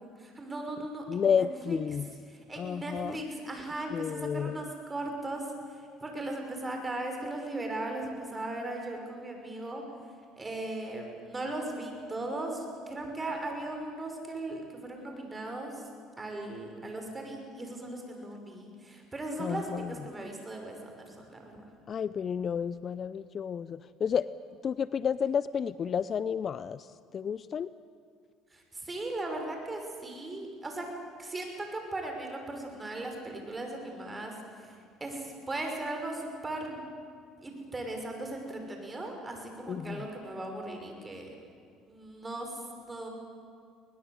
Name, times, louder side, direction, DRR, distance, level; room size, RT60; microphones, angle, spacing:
voice 1, 0.0-1.8 2.3-9.8 10.4-15.8 16.2-21.5 28.5-30.9 31.2-36.9 37.4-41.4 41.9-43.1, right 2 dB, 20° right, 3 dB, 5.9 m, -38 dB
voice 2, 1.1-2.1 2.6-3.2 3.9-4.6 19.4-19.9 21.9-24.3 24.6-26.9 27.1-27.7 39.7-40.0, left 7 dB, 45° left, 16 dB, 0.6 m, -31 dB
21.5 x 20.0 x 8.1 m, 2.2 s
supercardioid pair, 85°, 0 cm